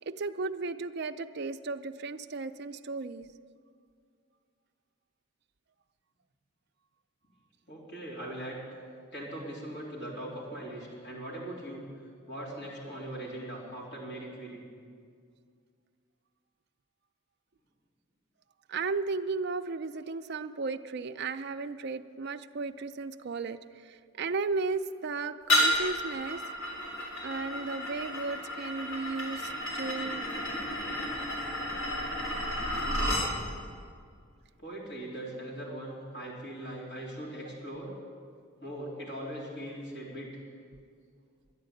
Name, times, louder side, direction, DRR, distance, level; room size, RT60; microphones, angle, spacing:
voice 1, 0.0-3.3 18.7-26.4 27.2-30.3 32.7-32.9, right 4 dB, 50° right, 7 dB, 0.5 m, -35 dB
voice 2, 7.7-8.6 9.1-11.9 12.3-14.6 34.6-37.9 38.6-40.4, right 1 dB, 55° left, -4 dB, 3.6 m, -40 dB
sound 1, 25.5-33.3, left 1 dB, 70° left, 3.7 m, -31 dB
12.0 x 9.5 x 9.0 m, 2.1 s
head